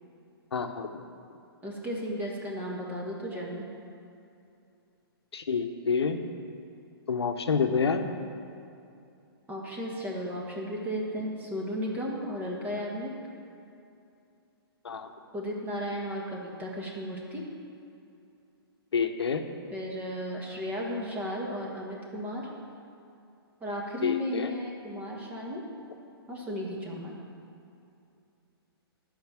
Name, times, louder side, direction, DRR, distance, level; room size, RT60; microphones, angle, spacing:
voice 1, 0.5-1.0 5.3-6.2 7.1-8.0 14.8-15.1 18.9-19.4 24.0-24.5, left 5 dB, 85° left, 6 dB, 0.9 m, -28 dB
voice 2, 1.6-3.7 9.5-13.1 15.3-17.4 19.7-22.5 23.6-25.6 26.3-27.2, equal, 10° right, -2 dB, 1.6 m, -34 dB
10.5 x 5.5 x 7.4 m, 2.6 s
hypercardioid pair, 145°, 13 cm